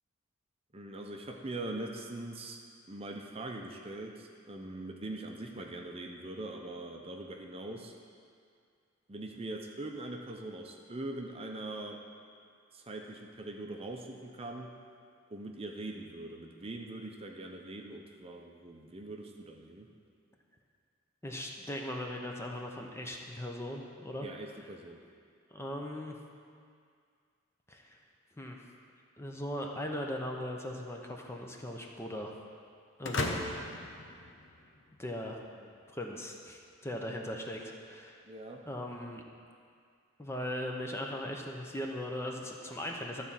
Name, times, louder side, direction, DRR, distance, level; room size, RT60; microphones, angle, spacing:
voice 1, 0.7-2.6 2.9-7.9 9.1-12.0 12.7-14.7 15.3-19.9 24.2-25.0 35.6-35.7 38.2-38.6, right 2 dB, 30° right, 2 dB, 0.7 m, -42 dB
voice 2, 21.2-24.3 25.5-26.1 27.7-28.0 28.4-28.6 29.2-32.3 33.0-33.4 35.0-35.4 35.9-38.2 38.6-39.2 40.2-43.2, left 1 dB, 15° left, 1 dB, 0.7 m, -39 dB
sound 1, 33.0-35.0, left 2 dB, 65° left, 0.8 m, -36 dB
12.5 x 4.2 x 7.4 m, 2.2 s
head